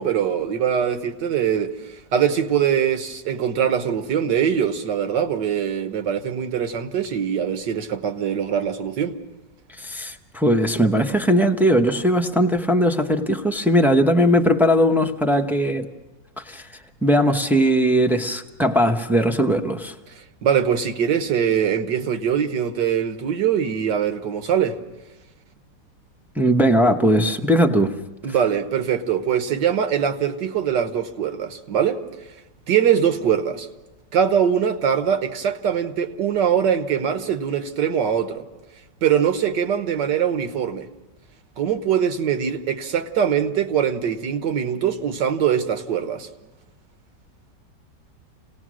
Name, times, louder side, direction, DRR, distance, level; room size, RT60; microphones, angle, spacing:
voice 1, 0.0-1.8 2.1-9.2 20.4-24.8 28.2-32.0 32.7-33.7 34.1-38.4 39.0-40.9 41.6-46.3, right 8 dB, 70° right, 1.7 m, -22 dB
voice 2, 9.7-15.9 16.5-16.7 17.0-19.9 26.4-28.0, equal, 5° right, 0.3 m, -19 dB
28.0 x 18.5 x 6.3 m
omnidirectional pair, 2.0 m